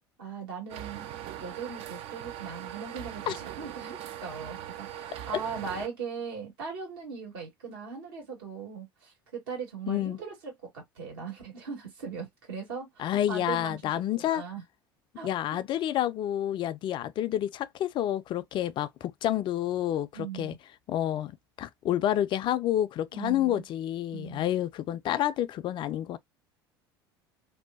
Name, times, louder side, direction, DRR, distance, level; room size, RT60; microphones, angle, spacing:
voice 1, 0.2-1.1 1.4-14.6 15.1-15.6 20.1-20.6 23.1-23.6 24.1-24.5, right 6 dB, 75° right, 1.6 m, -39 dB
sound 1, 0.7-5.9, right 11 dB, 50° right, 0.4 m, -40 dB
voice 2, 9.9-10.2 13.0-14.4 15.2-20.5 20.9-21.3 21.6-26.2, left 12 dB, 40° left, 0.3 m, -29 dB
2.7 x 2.1 x 2.3 m
hypercardioid pair, 75°, 12 cm